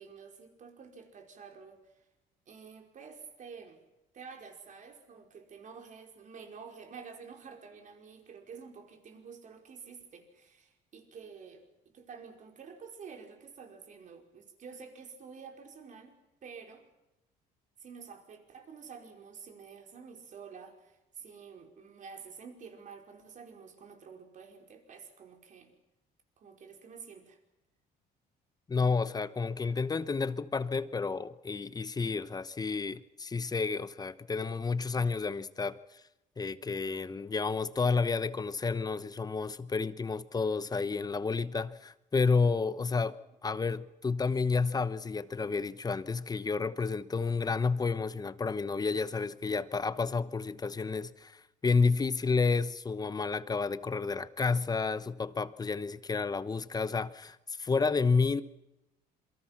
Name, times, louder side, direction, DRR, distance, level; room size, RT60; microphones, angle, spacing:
voice 1, 0.0-2.0 2.5-3.8 4.1-16.8 17.8-25.7 26.4-27.4 43.0-43.1, right 6 dB, 50° right, 5.0 m, -49 dB
voice 2, 28.7-35.8 36.4-58.4, left 4 dB, 25° left, 1.0 m, -30 dB
27.5 x 23.5 x 6.0 m
cardioid pair, 110°, 17 cm